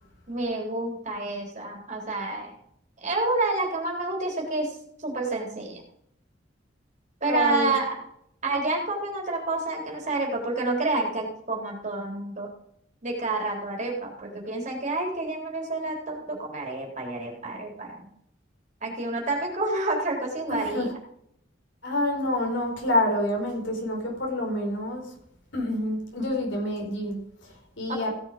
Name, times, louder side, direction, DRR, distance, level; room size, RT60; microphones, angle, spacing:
voice 1, 0.3-2.5 3.0-4.7 5.0-5.8 7.2-8.0 8.4-12.5 13.0-18.1 18.8-20.9 27.9-28.1, right 2 dB, 40° right, 0 dB, 3.7 m, -29 dB
voice 2, 7.2-7.7 20.5-20.9 21.8-25.1 25.5-28.1, left 1 dB, 80° left, 1 dB, 4.7 m, -28 dB
16.5 x 7.0 x 5.1 m, 0.71 s
head